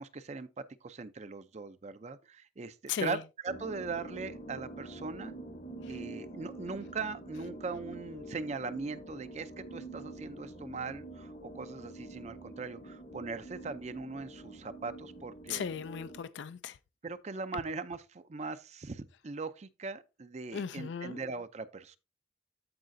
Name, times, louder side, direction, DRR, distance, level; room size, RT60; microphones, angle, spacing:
voice 1, 0.0-5.3 5.9-15.8 17.0-22.0, right 4 dB, 35° right, 0.5 m, -40 dB
sound 1, 3.5-16.2, right 2 dB, 45° left, 0.9 m, -46 dB
voice 2, 15.5-16.8 20.5-21.2, left 7 dB, 75° left, 0.4 m, -36 dB
14.0 x 4.9 x 2.6 m
head